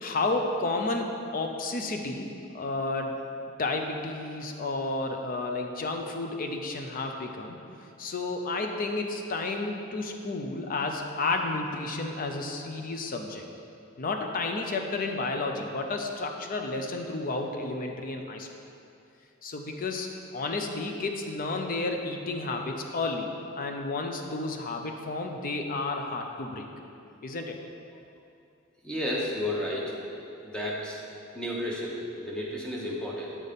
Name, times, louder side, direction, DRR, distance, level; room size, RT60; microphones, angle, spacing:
voice 1, 0.0-2.3 2.5-3.2 3.6-7.6 8.0-13.4 14.0-18.5 19.4-26.7 27.2-27.6, left 3 dB, 45° left, 3 dB, 0.5 m, -31 dB
voice 2, 28.8-30.1 30.4-31.0 31.3-33.4, left 1 dB, 5° left, -4 dB, 1.0 m, -32 dB
7.4 x 4.1 x 5.2 m, 2.6 s
head